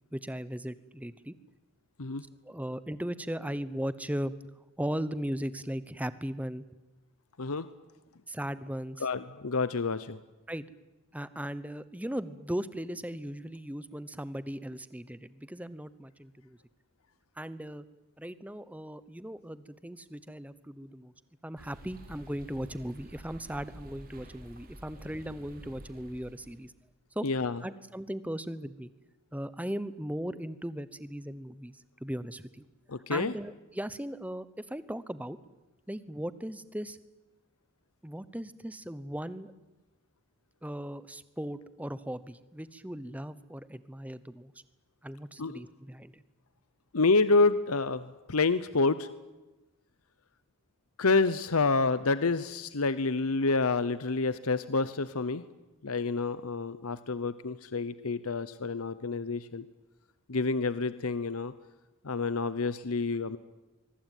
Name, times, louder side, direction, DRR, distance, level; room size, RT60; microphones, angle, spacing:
voice 1, 0.1-1.3 2.4-4.3 4.8-6.6 8.3-9.1 10.5-10.6 11.1-16.6 17.4-17.8 18.2-21.1 21.4-26.7 27.1-27.3 27.6-28.9 29.3-32.6 33.1-35.4 35.9-37.0 38.0-39.5 40.6-44.5 45.0-46.2, equal, 5° right, 15 dB, 0.9 m, -37 dB
voice 2, 7.4-7.7 9.0-10.2 27.2-27.6 32.9-33.3 45.4-45.6 46.9-49.1 51.0-55.4 55.8-59.7 60.3-61.5 62.0-63.4, left 3 dB, 80° left, 14 dB, 0.9 m, -28 dB
sound 1, 21.6-26.7, equal, 40° right, 3.4 m, -50 dB
24.5 x 23.0 x 9.2 m, 1.1 s
head